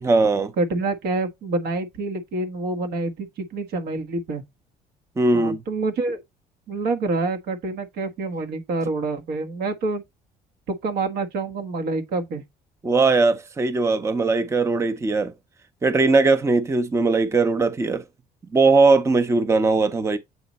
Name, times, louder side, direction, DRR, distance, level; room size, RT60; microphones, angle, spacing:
voice 1, 0.0-0.5 5.2-5.6 12.8-15.3 15.8-18.0 18.5-20.2, right 3 dB, 15° right, 0.6 m, -19 dB
voice 2, 0.6-4.4 5.3-6.2 6.7-10.0 10.7-12.4, right 3 dB, 75° right, 1.3 m, -27 dB
7.8 x 3.1 x 4.1 m
cardioid pair, 110°, 17 cm